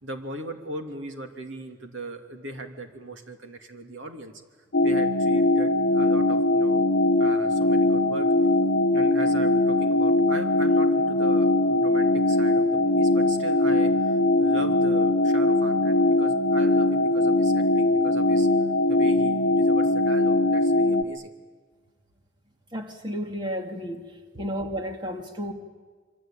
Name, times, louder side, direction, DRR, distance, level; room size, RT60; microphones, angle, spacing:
voice 1, 0.0-4.3 4.8-6.9 7.2-8.3 8.9-18.5 18.9-21.3 24.3-24.4, right 2 dB, 85° right, 5 dB, 2.7 m, -39 dB
sound 1, 4.7-21.0, left 2 dB, 70° left, 1.0 m, -21 dB
voice 2, 22.7-24.0 24.4-25.5, equal, 25° right, 3 dB, 2.4 m, -32 dB
26.5 x 24.5 x 9.0 m, 1.5 s
head